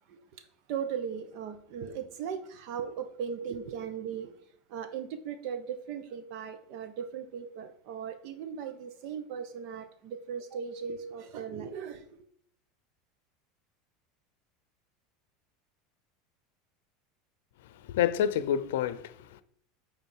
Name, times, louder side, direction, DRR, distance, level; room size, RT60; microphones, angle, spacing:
voice 1, 0.1-0.4 0.7-4.4 4.7-12.2, right 7 dB, 60° right, 1.1 m, -38 dB
voice 2, 17.7-19.4, left 10 dB, 85° left, 0.6 m, -29 dB
9.1 x 3.6 x 4.6 m
supercardioid pair, 125°, 0 cm